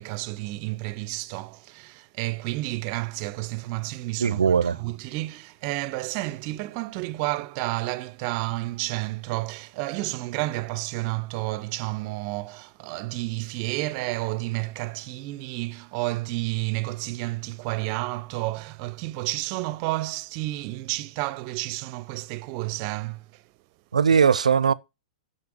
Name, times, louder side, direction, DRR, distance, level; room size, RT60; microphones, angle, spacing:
voice 1, 0.0-23.5, right 20 dB, 45° right, 0.6 m, -31 dB
voice 2, 4.2-4.8 23.9-24.7, right 6 dB, 90° right, 0.5 m, -19 dB
6.9 x 5.5 x 7.0 m
hypercardioid pair, 115°, 4 cm